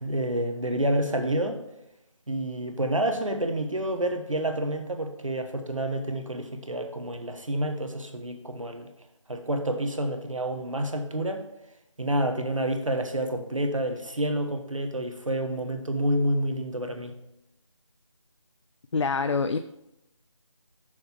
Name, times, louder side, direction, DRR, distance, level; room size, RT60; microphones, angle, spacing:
voice 1, 0.0-1.6 2.3-8.9 9.3-11.4 12.0-17.2, right 1 dB, 80° right, 5 dB, 1.2 m, -28 dB
voice 2, 18.9-19.6, left 4 dB, 65° left, 9 dB, 0.4 m, -25 dB
6.4 x 4.5 x 5.7 m, 0.86 s
figure-of-eight pair, 165°, 16 cm